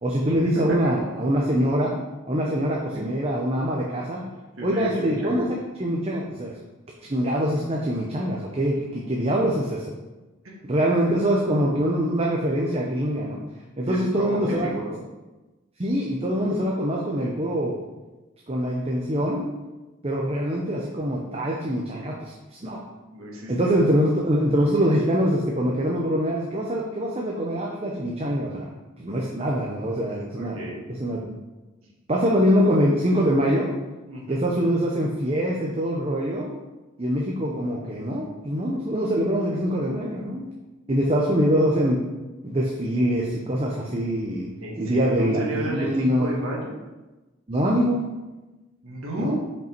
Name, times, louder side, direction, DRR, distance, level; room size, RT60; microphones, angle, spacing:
voice 1, 0.0-1.9 2.3-4.2 4.6-5.5 5.8-6.6 7.0-9.9 10.6-13.4 13.8-14.7 15.8-17.8 18.5-19.4 20.0-22.3 22.6-22.8 23.5-28.7 29.0-30.6 30.9-31.4 32.1-33.7 34.3-36.5 37.0-40.5 40.9-42.0 42.4-44.5 44.8-46.4 47.5-48.0 49.2-49.4, equal, 30° right, -2 dB, 0.7 m, -24 dB
voice 2, 4.6-5.5 10.4-10.6 13.9-15.0 23.1-23.7 30.3-30.8 34.1-34.4 44.6-46.7 48.8-49.4, right 1 dB, 80° right, -4 dB, 1.7 m, -32 dB
5.6 x 5.3 x 4.5 m, 1.1 s
head